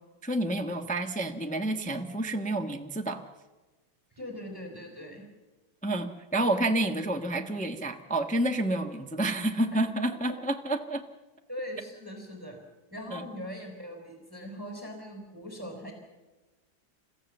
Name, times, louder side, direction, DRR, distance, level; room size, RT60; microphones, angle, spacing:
voice 1, 0.2-3.2 5.8-11.0 13.1-13.3, right 1 dB, 5° left, 4 dB, 0.9 m, -29 dB
voice 2, 4.1-5.2 11.5-12.6 12.9-15.9, equal, 10° right, 2 dB, 3.7 m, -40 dB
29.5 x 15.0 x 7.1 m, 1.2 s
omnidirectional pair, 2.1 m